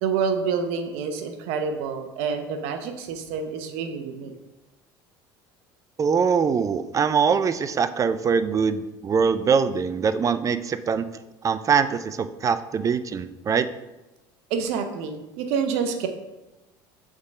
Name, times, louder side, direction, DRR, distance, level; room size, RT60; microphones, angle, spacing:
voice 1, 0.0-4.3 14.5-16.1, right 6 dB, 70° right, 6 dB, 0.8 m, -27 dB
voice 2, 6.0-11.1 11.4-13.7, right 6 dB, 30° right, 13 dB, 0.4 m, -23 dB
6.4 x 3.7 x 4.9 m, 1.0 s
hypercardioid pair, 80°, 11 cm